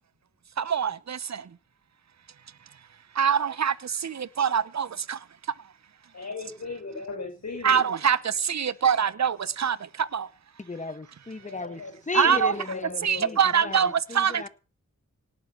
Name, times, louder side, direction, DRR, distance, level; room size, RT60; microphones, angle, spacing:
voice 1, 0.7-1.2 3.2-3.7 4.0-4.1 4.4-4.9 7.6-8.2 8.5-9.8 10.1-10.2 12.1-12.5 13.0-14.5, right 7 dB, 60° right, 0.9 m, -23 dB
voice 2, 6.1-7.8 8.6-8.8 10.8-10.9 11.4-11.9 12.2-13.9, left 3 dB, 55° left, 6.2 m, -37 dB
voice 3, 10.6-14.5, left 3 dB, 25° left, 1.5 m, -35 dB
18.5 x 10.0 x 6.0 m
cardioid pair, 65°, 32 cm